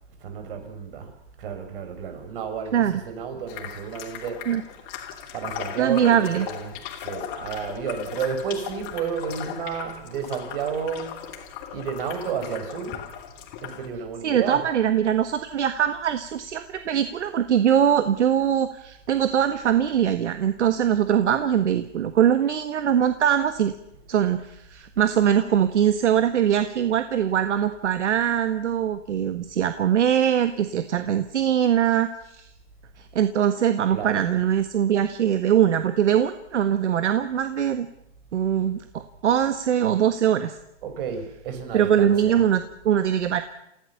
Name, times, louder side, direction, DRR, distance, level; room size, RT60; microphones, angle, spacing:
voice 1, 0.2-1.1 1.4-4.5 4.8-5.0 5.3-11.4 11.7-13.0 13.6-14.7 25.0-25.1 33.9-34.2 40.8-42.5, right 6 dB, 50° right, 7 dB, 5.8 m, -32 dB
sound 1, 3.5-13.9, left 10 dB, 30° left, 2.7 m, -38 dB
voice 2, 5.8-6.5 14.2-23.7 24.1-32.5 33.0-37.9 38.3-40.6 41.7-43.4, right 9 dB, 70° right, 10 dB, 1.6 m, -22 dB
28.5 x 16.5 x 7.1 m, 0.85 s
hypercardioid pair, 145°, 36 cm